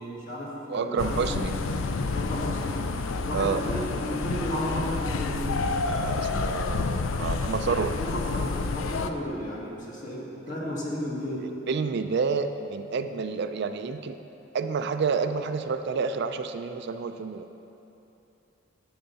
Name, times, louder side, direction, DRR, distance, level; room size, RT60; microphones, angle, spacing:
voice 1, 0.0-1.4 2.1-2.8 3.1-5.5 8.0-11.5, equal, 40° left, -4 dB, 1.7 m, -33 dB
voice 2, 0.7-1.5 3.3-3.6 5.8-7.9 10.6-10.7 11.7-14.2 14.5-17.5, right 5 dB, 60° right, 9 dB, 0.4 m, -29 dB
sound 1, 1.0-9.1, left 3 dB, 90° left, 0.5 m, -29 dB
10.0 x 7.9 x 4.1 m, 2.9 s
head